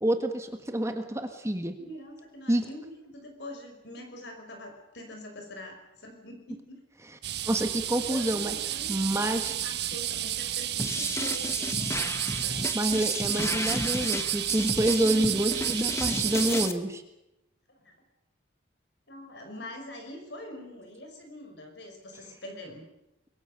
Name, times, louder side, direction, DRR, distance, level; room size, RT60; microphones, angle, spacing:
voice 1, 0.0-1.8 2.5-2.6 7.5-8.5 8.9-9.5 12.7-17.0, right 1 dB, 15° right, 6 dB, 1.5 m, -27 dB
voice 2, 1.8-6.8 7.9-12.7 17.7-17.9 19.1-22.8, left 1 dB, 60° left, 4 dB, 5.7 m, -44 dB
sound 1, 7.2-16.7, right 12 dB, 55° right, 1.2 m, -31 dB
sound 2, 10.8-16.7, left 2 dB, 15° left, 1.1 m, -33 dB
26.0 x 22.0 x 6.7 m, 0.90 s
head